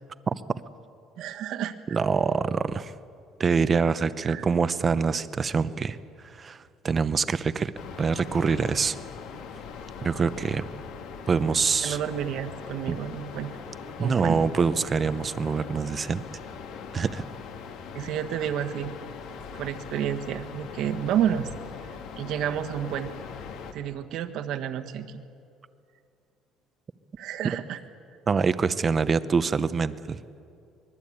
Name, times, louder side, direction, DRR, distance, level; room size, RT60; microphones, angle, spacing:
voice 1, 1.2-1.7 4.3-4.4 11.8-13.5 14.0-14.4 17.9-18.9 19.5-21.5 22.2-23.1 23.7-25.2 27.2-27.8, right 10 dB, 60° right, 7 dB, 1.5 m, -30 dB
voice 2, 1.9-2.9 3.4-6.0 6.2-7.7 8.0-8.9 10.0-10.7 11.3-12.0 12.9-13.0 14.0-16.2 16.9-17.3 28.3-30.2, right 5 dB, 25° right, 13 dB, 0.8 m, -25 dB
sound 1, 7.8-23.7, left 6 dB, 70° left, 2.3 m, -41 dB
24.5 x 21.5 x 8.7 m, 2.5 s
cardioid pair, 160°, 0 cm